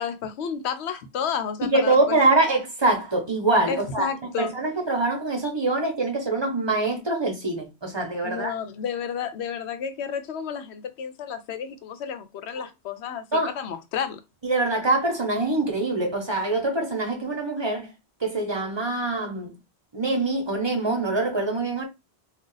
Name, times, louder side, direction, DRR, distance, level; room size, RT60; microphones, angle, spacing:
voice 1, 0.0-2.4 3.7-4.5 8.2-13.3 13.5-14.2, left 7 dB, 80° left, 0.8 m, -31 dB
voice 2, 1.6-8.5 12.6-12.7 13.3-13.5 14.4-17.9 18.2-19.6 19.9-21.8, right 2 dB, 25° right, 0.8 m, -24 dB
2.4 x 2.3 x 3.8 m
omnidirectional pair, 1.1 m